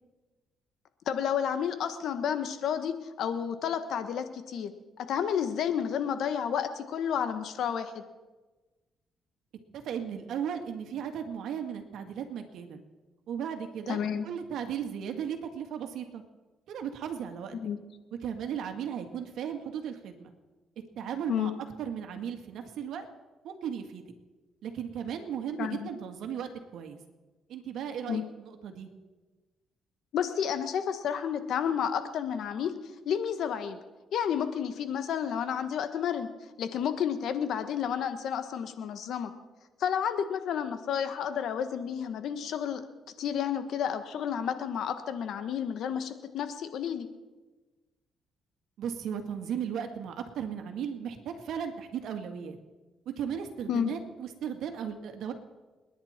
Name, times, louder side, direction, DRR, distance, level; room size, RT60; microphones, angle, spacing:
voice 1, 1.1-4.7 5.0-8.0 13.9-14.2 17.5-17.8 21.3-21.5 25.6-25.9 28.1-28.2 30.1-32.7 33.0-33.8 34.1-36.3 36.6-39.3 39.8-42.8 43.2-47.1 53.7-53.9, left 8 dB, 75° left, 9 dB, 1.4 m, -31 dB
voice 2, 9.7-12.8 13.3-16.2 16.7-17.6 18.2-20.3 21.0-21.5 21.8-23.1 23.4-24.0 24.6-27.0 27.5-28.9 48.8-52.6 53.1-55.3, right 8 dB, 75° right, 5 dB, 2.0 m, -36 dB
29.5 x 10.5 x 4.5 m, 1.2 s
cardioid pair, 90°, 0 cm